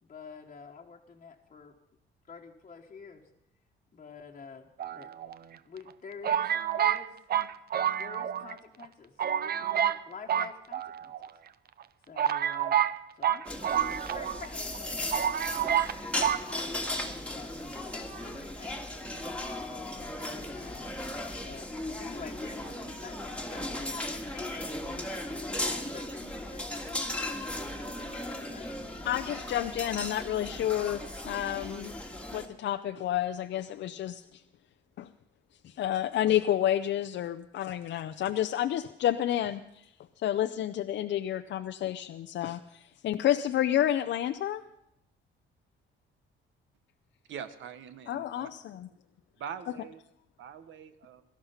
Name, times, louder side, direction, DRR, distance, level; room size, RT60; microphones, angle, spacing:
voice 1, 0.0-1.8 2.3-3.2 3.9-5.1 5.6-7.2 8.0-9.2 9.6-11.1 12.1-12.9 13.2-13.6 13.9-17.5 17.9-19.1 19.9-21.1 21.3-27.4 27.8-28.7, left 5 dB, 35° left, -2 dB, 1.3 m, -49 dB
sound 1, 4.8-5.6 6.2-8.5 8.8-8.9 9.2-10.0 10.3-11.3 11.8-11.9 12.2-14.5 14.7-14.8 15.1-15.9 16.2-16.4, right 9 dB, 50° right, 0.6 m, -28 dB
sound 2, 13.4-32.5, left 1 dB, 5° left, 1.8 m, -37 dB
voice 2, 29.0-31.9 32.3-34.4 35.0-35.1 35.6-39.8 40.2-44.6 48.1-48.9, left 11 dB, 65° left, 7 dB, 0.5 m, -30 dB
voice 3, 47.3-48.5 49.4-50.0 50.4-51.2, right 8 dB, 75° right, 12 dB, 1.1 m, -43 dB
17.0 x 12.5 x 5.7 m, 0.79 s
cardioid pair, 90°, 20 cm